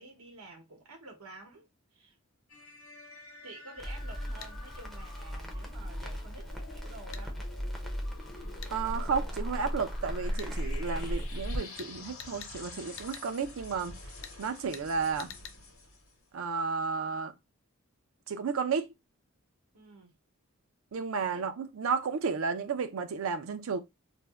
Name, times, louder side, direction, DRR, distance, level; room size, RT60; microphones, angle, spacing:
voice 1, 0.0-2.2 3.4-7.4 19.7-20.1 21.3-21.5, right 2 dB, 90° right, 0.9 m, -50 dB
sound 1, 2.5-16.2, left 3 dB, 75° left, 1.0 m, -49 dB
Crackle, 3.8-11.6, equal, ahead, 0.4 m, -36 dB
sound 2, 4.4-4.5 7.1-7.3 8.6-8.8 10.4-10.5 11.8-11.9 12.2-12.5 13.0-13.3 14.2-14.4 14.7-14.9 15.2-15.6, left 8 dB, 60° left, 0.4 m, -46 dB
voice 2, 8.7-14.0 14.4-15.3 16.3-17.3 18.3-18.9 20.9-23.8, right 5 dB, 70° right, 0.4 m, -32 dB
2.5 x 2.1 x 3.3 m
head